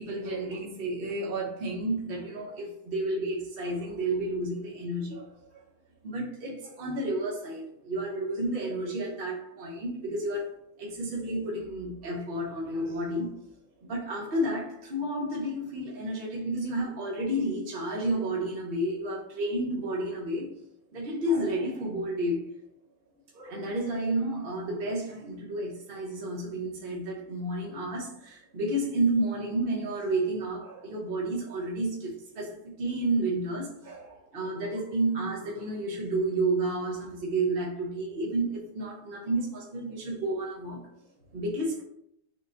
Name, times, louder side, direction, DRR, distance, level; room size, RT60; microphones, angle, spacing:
voice 1, 0.0-5.3 6.0-13.3 13.9-20.5 20.9-22.5 23.3-40.9 41.3-41.8, right 1 dB, 40° right, -3 dB, 0.9 m, -31 dB
6.6 x 2.2 x 2.5 m, 0.68 s
omnidirectional pair, 2.0 m